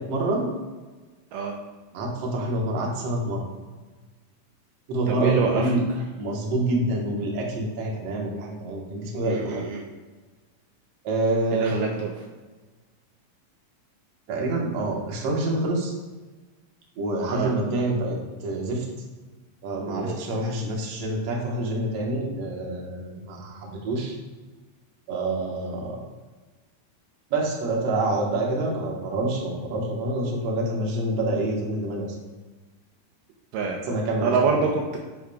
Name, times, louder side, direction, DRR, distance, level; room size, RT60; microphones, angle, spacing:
voice 1, 0.1-0.5 1.9-3.4 4.9-5.9 6.2-9.7 11.0-11.8 14.3-15.9 17.0-18.2 18.4-18.9 19.6-24.2 25.1-26.0 27.3-32.1 33.9-34.5, right 2 dB, 60° right, -1 dB, 1.9 m, -27 dB
voice 2, 5.1-5.7 9.2-9.8 11.5-12.1 17.3-17.5 19.9-20.2 33.5-35.0, right 5 dB, 80° right, 0 dB, 2.1 m, -26 dB
10.5 x 4.9 x 2.3 m, 1.3 s
omnidirectional pair, 4.0 m